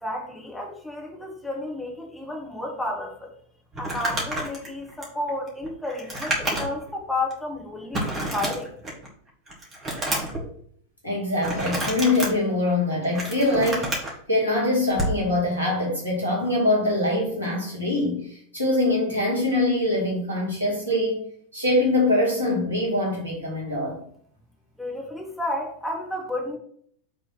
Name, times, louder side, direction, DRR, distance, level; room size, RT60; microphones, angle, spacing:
voice 1, 0.0-3.3 3.8-8.7 24.8-26.6, left 1 dB, 5° left, -2 dB, 1.8 m, -32 dB
Crumpling crinkling, 3.7-6.9 7.3-7.4 7.9-9.1 9.5-10.4 11.4-12.3 12.9-14.1 14.9-15.2, right 1 dB, 25° right, 2.1 m, -29 dB
voice 2, 11.0-13.9 14.3-18.3 18.5-21.2 21.5-24.0, left 1 dB, 85° left, -2 dB, 2.5 m, -23 dB
6.2 x 3.7 x 6.0 m, 0.62 s
figure-of-eight pair, 90°, 0 cm